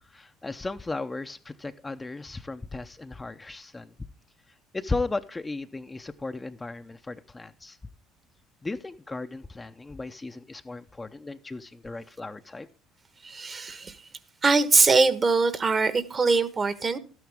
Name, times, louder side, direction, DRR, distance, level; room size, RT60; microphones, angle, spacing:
voice 1, 0.1-3.9 4.7-7.8 8.6-12.7, left 3 dB, 20° left, 0.7 m, -35 dB
voice 2, 13.2-14.0 14.4-17.0, right 4 dB, 35° right, 1.2 m, -22 dB
12.5 x 9.4 x 3.5 m
hypercardioid pair, 70°, 0 cm